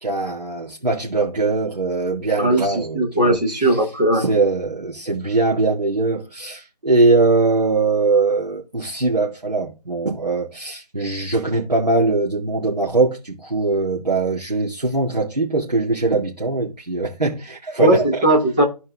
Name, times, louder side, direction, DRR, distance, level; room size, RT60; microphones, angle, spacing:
voice 1, 0.0-3.4 3.7-3.8 4.1-18.2, right 3 dB, 80° right, 2.2 m, -21 dB
voice 2, 2.4-4.2 17.8-18.6, right 1 dB, 10° right, 0.9 m, -18 dB
13.0 x 4.4 x 3.5 m
figure-of-eight pair, 160°, 21 cm